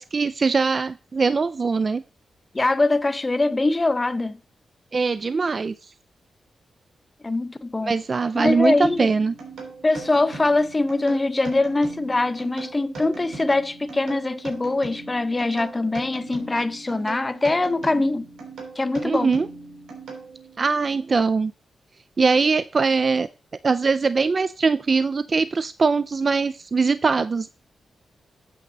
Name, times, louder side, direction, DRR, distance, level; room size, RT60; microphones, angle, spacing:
voice 1, 0.0-2.0 4.9-5.9 7.9-9.3 19.0-19.5 20.6-21.5 22.2-23.3 23.6-27.5, right 4 dB, 35° right, 0.3 m, -22 dB
voice 2, 2.5-4.4 7.2-7.9 8.3-9.1 9.8-18.3 18.8-19.3, left 2 dB, 20° left, 0.6 m, -23 dB
sound 1, 8.5-20.6, right 3 dB, 85° right, 3.5 m, -39 dB
8.5 x 6.5 x 4.0 m
wide cardioid pair, 135°, 0 cm